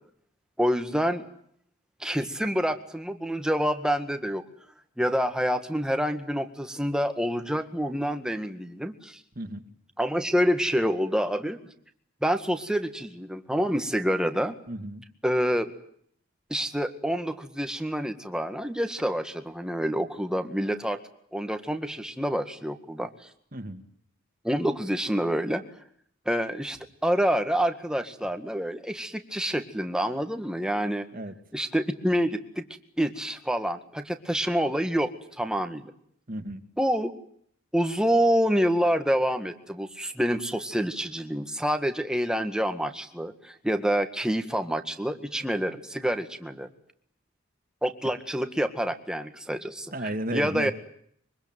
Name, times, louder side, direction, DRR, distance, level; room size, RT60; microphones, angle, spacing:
voice 1, 0.6-1.2 2.0-4.4 5.0-9.2 10.0-11.6 12.2-14.6 15.2-15.7 16.5-21.0 21.3-23.1 24.4-25.6 26.3-31.1 31.5-32.7 33.0-35.1 35.4-35.9 36.8-37.1 37.7-46.7 47.8-50.7, equal, 5° right, 7 dB, 1.9 m, -27 dB
voice 2, 14.7-15.0 23.5-23.8 31.1-31.3 36.3-36.6 49.9-50.7, right 1 dB, 40° right, 8 dB, 2.3 m, -33 dB
24.5 x 24.0 x 9.1 m, 0.67 s
head